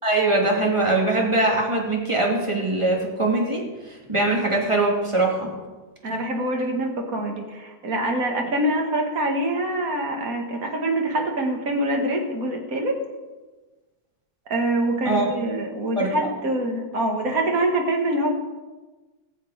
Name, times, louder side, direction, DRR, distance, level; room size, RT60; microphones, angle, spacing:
voice 1, 0.0-3.6 3.9-5.5 15.0-15.3 16.0-16.1, right 2 dB, 15° right, -2 dB, 2.7 m, -22 dB
voice 2, 6.0-13.0 14.5-18.3, right 1 dB, 60° right, 2 dB, 2.2 m, -25 dB
20.0 x 7.3 x 5.0 m, 1.2 s
omnidirectional pair, 1.8 m